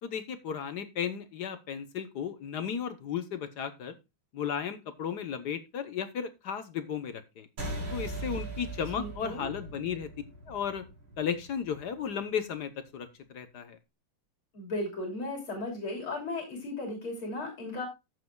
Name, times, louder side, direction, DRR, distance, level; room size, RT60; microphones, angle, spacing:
voice 1, 0.0-3.9 4.3-7.5 7.9-10.1 10.5-10.8 11.2-13.8, left 7 dB, 60° left, 10 dB, 1.4 m, -35 dB
sound 1, 7.6-12.4, right 2 dB, 55° right, 4.4 m, -40 dB
voice 2, 9.0-9.5 14.5-17.9, left 2 dB, 90° left, 1 dB, 3.9 m, -36 dB
14.0 x 7.5 x 2.3 m, 0.25 s
omnidirectional pair, 2.2 m